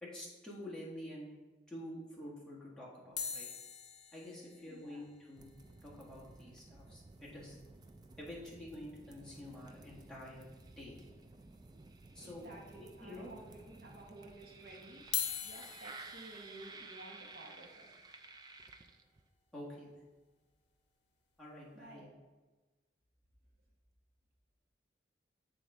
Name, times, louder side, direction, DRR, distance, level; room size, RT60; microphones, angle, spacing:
voice 1, 0.0-1.3 1.7-3.5 4.1-5.5 5.8-7.6 8.2-10.5 10.8-11.0 12.1-12.4 12.8-13.3 19.5-19.9 21.4-22.1, left 1 dB, 5° left, -7 dB, 1.4 m, -48 dB
sound 1, 3.2-7.5 7.8-8.2 8.6-8.8 10.1-10.2 10.9-11.4 11.9-12.0 12.9-13.0 15.0-21.1 21.6-21.9, left 8 dB, 70° left, 0.7 m, -45 dB
voice 2, 4.5-5.0 12.2-17.9 21.7-22.1, right 1 dB, 55° right, -1 dB, 1.1 m, -54 dB
sound 2, 5.4-19.3, right 3 dB, 25° right, 0.3 m, -54 dB
7.4 x 4.0 x 3.5 m, 1.2 s
head